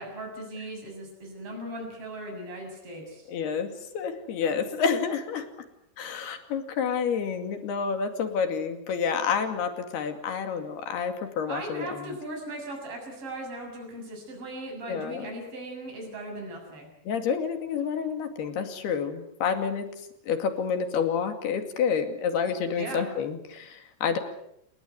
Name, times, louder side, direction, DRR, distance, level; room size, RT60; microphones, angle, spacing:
voice 1, 0.0-3.3 11.5-16.9 22.8-23.1, right 1 dB, 35° right, 1 dB, 8.0 m, -38 dB
voice 2, 3.3-5.5 6.0-12.2 14.9-15.3 17.1-19.9 20.2-24.2, left 6 dB, 70° left, 7 dB, 4.3 m, -29 dB
29.5 x 19.5 x 8.0 m, 0.78 s
omnidirectional pair, 4.9 m